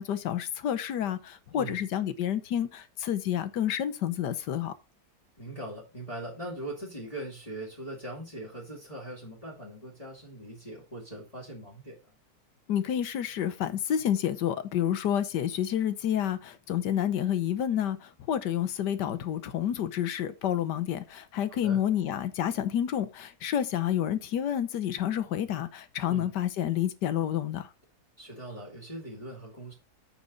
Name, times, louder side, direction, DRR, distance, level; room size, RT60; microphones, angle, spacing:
voice 1, 0.0-4.7 12.7-27.7, left 10 dB, 85° left, 1.5 m, -29 dB
voice 2, 1.5-1.8 5.4-12.1 21.5-21.8 26.0-26.3 28.2-29.7, right 1 dB, 20° left, 2.6 m, -41 dB
8.8 x 6.2 x 4.0 m
omnidirectional pair, 1.8 m